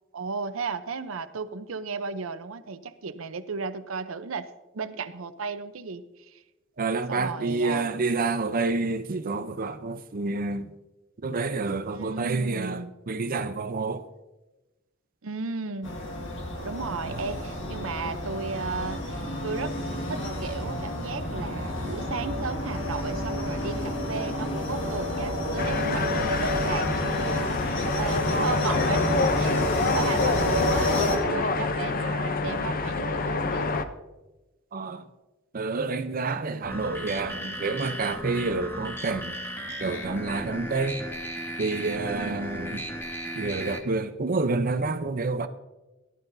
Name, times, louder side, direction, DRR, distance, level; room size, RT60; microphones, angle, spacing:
voice 1, 0.1-4.5 4.7-6.4 7.1-8.0 11.9-12.9 15.2-16.0 16.6-19.7 20.1-33.7 42.1-42.5, right 4 dB, 90° right, 0.7 m, -34 dB
voice 2, 6.8-10.7 11.2-14.0 17.1-17.3 34.7-35.1 35.5-39.4 39.8-41.0 41.6-42.9 43.3-45.5, right 3 dB, 45° right, 0.6 m, -28 dB
sound 1, 15.8-31.2, left 1 dB, 65° left, 1.8 m, -30 dB
sound 2, 25.6-33.8, left 3 dB, 45° left, 0.7 m, -27 dB
sound 3, 36.6-43.8, equal, 10° left, 1.3 m, -36 dB
18.5 x 11.5 x 2.7 m
head